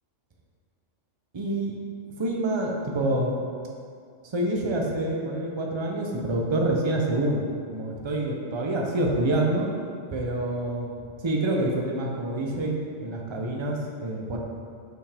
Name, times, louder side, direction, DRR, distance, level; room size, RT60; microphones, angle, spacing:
voice 1, 1.3-1.7 2.2-3.4 4.2-7.4 7.7-9.7 10.1-14.4, right 1 dB, 30° right, -1 dB, 0.7 m, -27 dB
7.1 x 5.7 x 3.5 m, 2.3 s
omnidirectional pair, 1.3 m